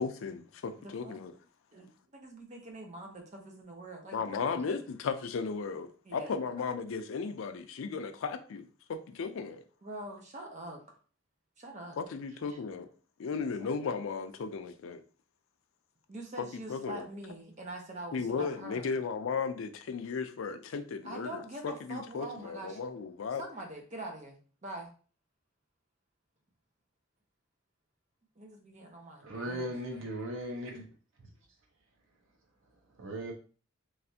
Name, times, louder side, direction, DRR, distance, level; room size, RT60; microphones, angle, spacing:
voice 1, 0.0-1.3 4.1-9.6 12.0-12.9 13.2-15.0 16.4-17.1 18.1-23.4, left 5 dB, 75° left, 0.4 m, -35 dB
voice 2, 0.8-1.2 1.7-4.8 6.0-6.3 9.8-10.8 11.6-12.0 12.3-12.6 13.6-13.7 16.1-19.0 21.0-22.8 23.3-24.9 28.4-30.0, right 1 dB, 35° right, 0.7 m, -44 dB
voice 3, 29.2-30.8 33.0-33.3, right 1 dB, 70° right, 0.8 m, -37 dB
3.2 x 2.5 x 2.7 m
head